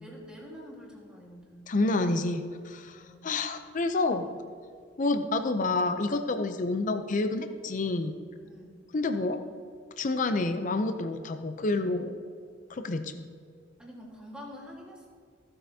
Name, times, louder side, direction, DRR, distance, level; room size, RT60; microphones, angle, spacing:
voice 1, 0.0-1.7 3.0-3.2 8.4-8.8 13.8-15.1, equal, 5° right, -3 dB, 1.6 m, -46 dB
voice 2, 1.7-4.3 5.0-8.1 8.9-9.4 10.0-12.1 12.7-13.3, left 2 dB, 40° left, 8 dB, 0.5 m, -28 dB
15.0 x 7.7 x 2.7 m, 2.1 s
head